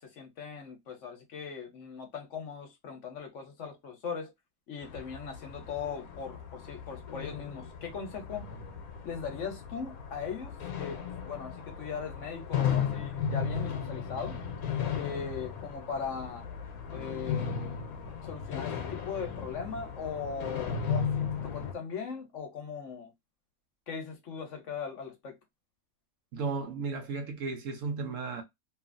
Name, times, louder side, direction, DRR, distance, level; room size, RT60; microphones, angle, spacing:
voice 1, 0.0-4.3 4.7-8.5 9.0-14.4 15.0-16.4 16.9-17.8 18.2-23.1 23.9-25.4, left 6 dB, 60° left, 1.0 m, -39 dB
sound 1, 4.8-21.7, left 7 dB, 80° left, 1.1 m, -35 dB
voice 2, 26.3-28.4, right 4 dB, 65° right, 1.1 m, -34 dB
3.0 x 2.4 x 2.4 m
omnidirectional pair, 1.5 m